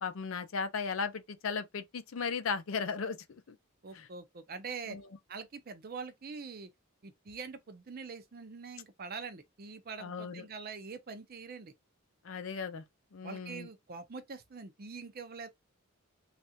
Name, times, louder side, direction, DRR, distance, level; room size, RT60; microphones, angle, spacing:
voice 1, 0.0-3.2 3.5-3.6 3.9-4.1 4.9-5.0 10.0-10.4 12.2-12.8 13.1-13.7, left 5 dB, 70° left, 0.5 m, -36 dB
voice 2, 3.8-5.0 5.3-6.7 7.0-11.7 13.2-15.5, right 5 dB, 45° right, 0.6 m, -44 dB
3.2 x 2.4 x 2.7 m
head